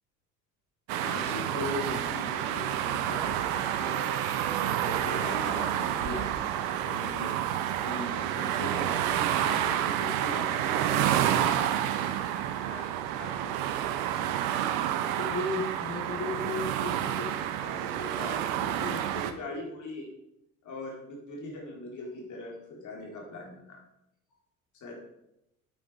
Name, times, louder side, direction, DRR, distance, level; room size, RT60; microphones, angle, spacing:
sound 1, 0.9-19.3, right 11 dB, 60° right, 1.1 m, -29 dB
voice 1, 1.0-4.0 4.6-6.4 6.6-7.3 7.8-14.0 15.3-20.1 20.6-23.8 24.8-25.0, left 2 dB, 45° left, -1 dB, 4.1 m, -39 dB
9.2 x 8.8 x 5.0 m, 0.82 s
figure-of-eight pair, 65°, 43 cm